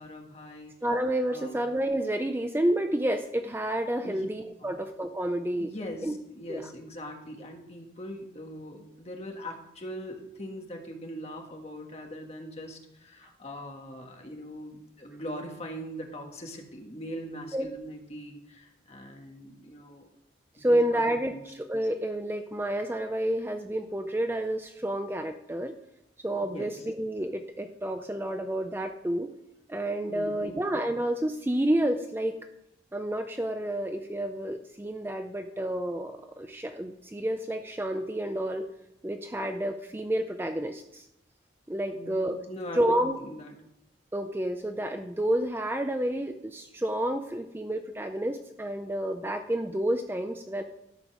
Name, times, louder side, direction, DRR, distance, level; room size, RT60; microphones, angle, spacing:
voice 1, 0.0-0.7 1.3-1.6 4.0-4.3 4.6-4.8 5.6-20.1 20.6-21.0 21.3-21.4 26.4-26.7 30.1-30.7 41.9-43.6, equal, 35° left, 2 dB, 1.5 m, -41 dB
voice 2, 0.8-5.7 6.0-6.1 6.5-6.6 17.5-17.7 20.6-25.7 26.2-29.3 29.7-32.4 32.9-38.7 39.0-41.1 41.7-42.4 42.7-43.2 44.1-50.6, right 1 dB, 10° right, 6 dB, 0.4 m, -29 dB
12.5 x 5.3 x 6.1 m, 0.82 s
head